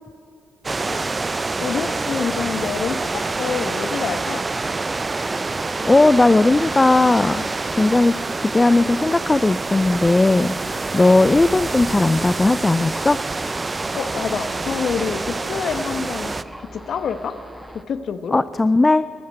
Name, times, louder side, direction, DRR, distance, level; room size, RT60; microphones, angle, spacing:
sound 1, 0.6-16.4, right 3 dB, 30° right, 0.5 m, -26 dB
voice 1, 1.6-4.4 13.9-16.4 16.7-17.4 17.7-18.4, left 6 dB, 60° left, 11 dB, 1.1 m, -27 dB
voice 2, 5.8-13.2 18.3-19.0, left 2 dB, 20° left, 16 dB, 0.4 m, -17 dB
Thunder, 12.8-17.8, equal, ahead, 1.2 m, -39 dB
14.0 x 11.5 x 9.1 m, 2.6 s
supercardioid pair, 60°, 0 cm